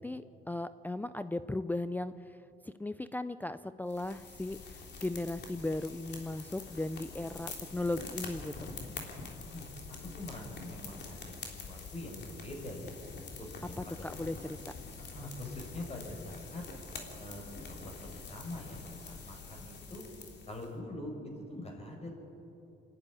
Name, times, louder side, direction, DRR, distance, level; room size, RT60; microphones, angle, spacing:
voice 1, 0.0-2.4 2.6-8.7 14.0-14.4, left 2 dB, 10° left, 11 dB, 0.5 m, -37 dB
sound 1, 3.9-20.7, left 4 dB, 60° left, 3.4 m, -46 dB
voice 2, 10.0-12.9 13.4-14.1 15.1-16.6 17.2-20.0 20.5-22.2, left 1 dB, 30° left, 1 dB, 5.9 m, -44 dB
26.5 x 11.0 x 9.8 m, 2.8 s
cardioid pair, 90°, 20 cm